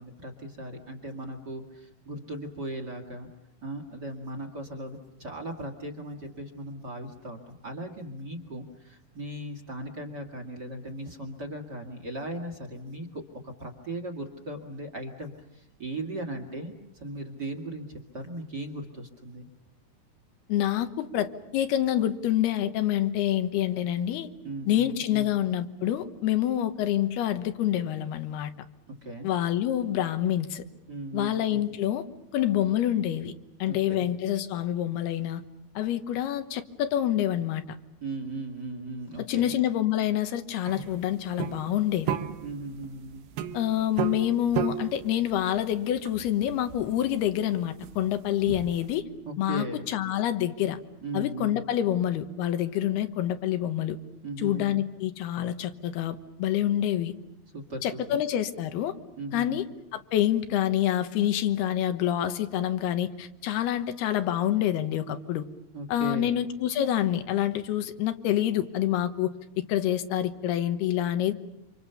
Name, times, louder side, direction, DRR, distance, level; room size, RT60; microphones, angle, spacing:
voice 1, 0.0-3.3 3.6-19.5 24.4-25.3 28.9-29.3 30.9-31.6 33.7-34.1 38.0-39.5 42.4-43.3 49.3-49.8 51.0-51.6 54.2-54.8 57.5-58.2 59.2-59.7 65.7-66.3, right 1 dB, 30° right, 5 dB, 2.3 m, -38 dB
voice 2, 20.5-24.3 24.7-28.5 29.2-30.6 31.1-32.1 32.3-33.3 33.6-35.4 35.8-37.6 39.3-42.2 43.5-49.1 49.4-50.8 51.1-54.0 54.4-57.1 57.8-59.0 59.3-59.6 59.9-65.5 65.9-69.3 69.7-71.3, left 11 dB, 80° left, 10 dB, 3.2 m, -27 dB
sound 1, 40.7-48.9, right 10 dB, 85° right, 3.3 m, -35 dB
28.0 x 26.5 x 7.0 m, 0.84 s
omnidirectional pair, 4.5 m